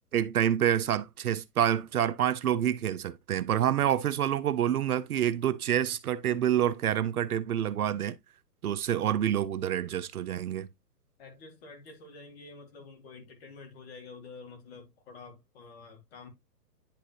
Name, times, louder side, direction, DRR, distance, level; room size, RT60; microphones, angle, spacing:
voice 1, 0.1-8.2 8.6-10.7, right 10 dB, 65° right, 0.7 m, -27 dB
voice 2, 11.2-16.3, left 4 dB, 40° left, 2.5 m, -48 dB
10.0 x 3.7 x 2.8 m
hypercardioid pair, 140°, 48 cm